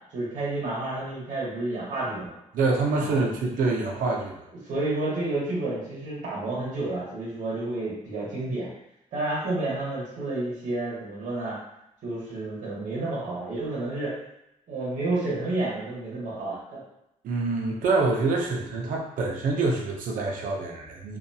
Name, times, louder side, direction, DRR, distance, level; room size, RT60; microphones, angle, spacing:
voice 1, 0.1-2.4 3.0-3.2 4.7-8.7 9.1-11.6 12.0-14.1 14.7-16.8, right 2 dB, 70° right, -7 dB, 1.1 m, -30 dB
voice 2, 2.5-4.3 17.2-21.2, right 3 dB, 90° right, -1 dB, 0.6 m, -26 dB
2.6 x 2.3 x 2.6 m, 0.83 s
wide cardioid pair, 155°, 14 cm